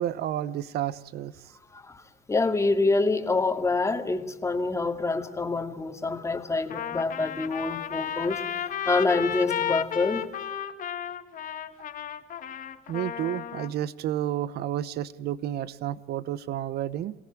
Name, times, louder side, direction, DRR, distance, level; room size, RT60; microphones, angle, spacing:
voice 1, 0.0-1.5 12.9-17.1, right 11 dB, 70° right, 17 dB, 0.9 m, -31 dB
voice 2, 1.7-2.0 2.3-8.6 8.9-10.3, left 3 dB, 15° left, 6 dB, 2.2 m, -26 dB
Trumpet, 6.7-13.7, left 9 dB, 55° left, 1.9 m, -33 dB
27.5 x 18.0 x 8.9 m, 1.0 s
cardioid pair, 110°, 17 cm